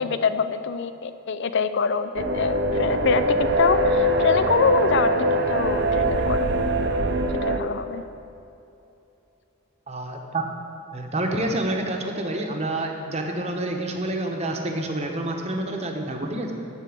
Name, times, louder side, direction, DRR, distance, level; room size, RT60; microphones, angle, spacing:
voice 1, 0.0-5.1 5.5-6.5 7.4-8.0, left 5 dB, 55° left, 11 dB, 0.4 m, -24 dB
sound 1, 2.2-7.6, right 1 dB, 55° right, 0.6 m, -23 dB
voice 2, 9.9-10.4 10.9-16.5, right 1 dB, 30° right, 2 dB, 0.9 m, -28 dB
13.0 x 4.5 x 7.8 m, 2.8 s
head